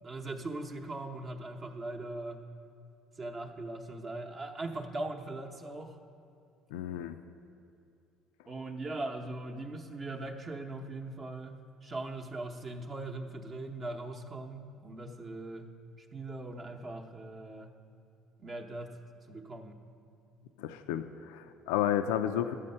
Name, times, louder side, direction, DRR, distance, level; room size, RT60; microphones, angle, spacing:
voice 1, 0.0-2.5 3.2-6.0 8.5-17.7 18.4-19.0 19.3-19.8, right 2 dB, 35° right, 2 dB, 0.8 m, -40 dB
voice 2, 6.7-7.1 20.6-22.5, left 11 dB, 90° left, 9 dB, 0.4 m, -32 dB
11.5 x 7.6 x 5.5 m, 2.6 s
supercardioid pair, 90°, 0 cm